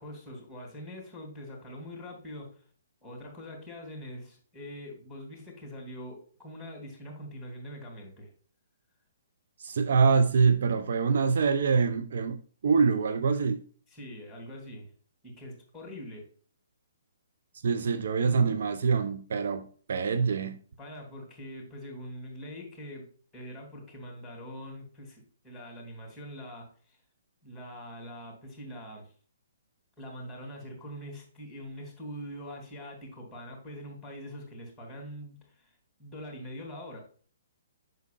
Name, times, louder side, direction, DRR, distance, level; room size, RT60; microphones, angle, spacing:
voice 1, 0.0-2.6 3.0-8.3 13.9-14.9 15.2-16.3 20.8-27.0 27.4-29.1 30.0-37.0, equal, 5° left, 3.1 m, -43 dB
voice 2, 9.6-13.6 17.6-20.6, right 5 dB, 60° right, 0.6 m, -25 dB
8.1 x 6.5 x 2.5 m
figure-of-eight pair, 130°, 0 cm